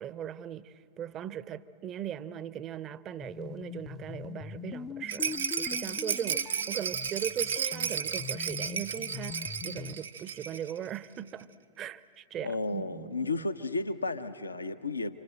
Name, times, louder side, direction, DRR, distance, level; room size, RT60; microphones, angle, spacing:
voice 1, 0.0-11.5 11.8-13.5, right 9 dB, 30° right, 0.7 m, -39 dB
sound 1, 3.2-10.0, left 8 dB, 25° left, 0.5 m, -42 dB
Rattle, 5.1-10.8 11.0-11.1 11.4-11.5, right 7 dB, 70° right, 0.7 m, -33 dB
voice 2, 12.4-15.2, left 3 dB, 80° left, 0.8 m, -33 dB
29.0 x 26.0 x 7.9 m
figure-of-eight pair, 90°, 0 cm